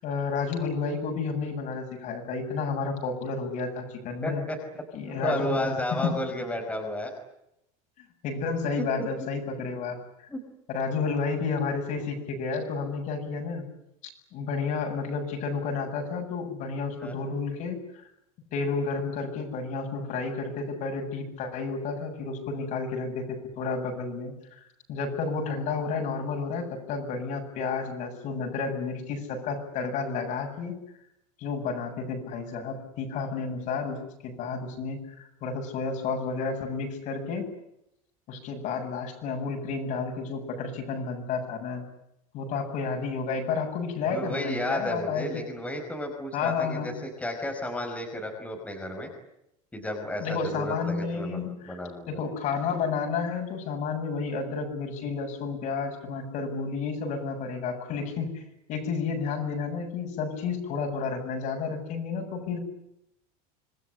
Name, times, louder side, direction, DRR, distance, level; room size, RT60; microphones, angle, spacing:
voice 1, 0.0-4.4 4.9-5.7 6.0-6.2 8.2-10.0 10.7-13.6 14.3-18.0 18.5-24.3 24.9-30.8 31.4-37.5 38.3-41.9 42.3-45.5 46.3-46.9 50.2-51.8 52.1-58.4 58.7-62.6, left 4 dB, 45° left, 3 dB, 7.8 m, -31 dB
voice 2, 4.2-4.8 5.2-7.1 8.7-8.8 10.3-10.4 17.0-17.4 44.0-49.1 49.7-52.2, left 1 dB, 10° left, 2 dB, 5.0 m, -32 dB
27.0 x 20.0 x 9.9 m, 0.81 s
supercardioid pair, 150°, 17 cm